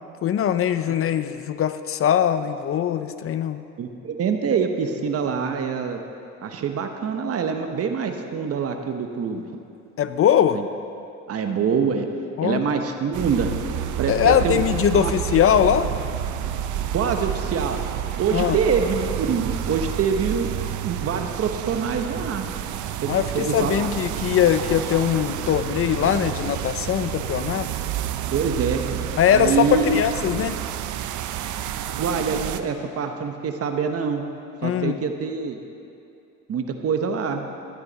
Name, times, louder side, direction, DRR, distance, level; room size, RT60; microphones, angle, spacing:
voice 1, 0.2-3.6 10.0-10.6 12.4-12.6 14.1-15.9 18.3-18.6 23.1-27.7 29.2-30.6 34.6-35.0, left 9 dB, 50° left, 12 dB, 0.5 m, -21 dB
voice 2, 3.8-6.0 6.4-9.4 10.5-10.7 11.3-12.1 12.4-13.5 14.0-14.6 14.9-15.1 16.9-17.8 18.2-20.5 20.8-22.5 23.0-23.9 28.3-29.0 29.3-30.0 32.0-34.2 34.6-35.6 36.5-37.5, right 6 dB, 50° right, 6 dB, 1.1 m, -25 dB
sound 1, 13.1-32.6, right 11 dB, 75° right, 0.6 m, -29 dB
13.0 x 10.5 x 4.1 m, 2.6 s
cardioid pair, 90°, 30 cm